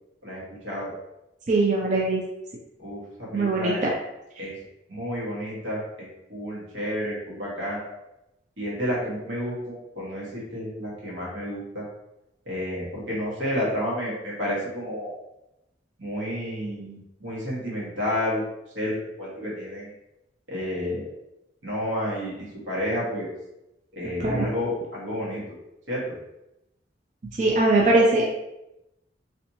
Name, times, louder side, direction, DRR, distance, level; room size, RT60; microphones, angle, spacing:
voice 1, 0.2-0.9 2.8-3.8 4.4-4.5 4.9-7.9 8.6-11.8 12.4-15.1 16.0-18.5 18.7-19.9 20.5-21.1 21.6-23.3 23.9-25.4 25.9-26.0, equal, 85° right, -5 dB, 1.4 m, -30 dB
voice 2, 1.5-2.2 3.3-3.7 24.2-24.5 27.4-28.4, right 2 dB, 40° right, -3 dB, 0.4 m, -21 dB
3.2 x 2.9 x 2.7 m, 0.90 s
head